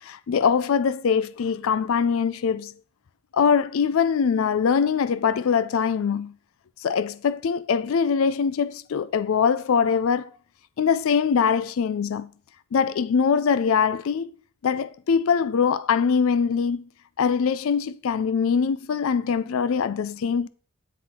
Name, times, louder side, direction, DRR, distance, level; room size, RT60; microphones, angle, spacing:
voice 1, 0.0-2.7 3.3-6.3 6.8-10.3 10.8-12.3 12.7-14.3 14.6-16.9 17.2-20.5, left 6 dB, 70° left, 0.4 m, -23 dB
9.4 x 3.9 x 4.3 m
head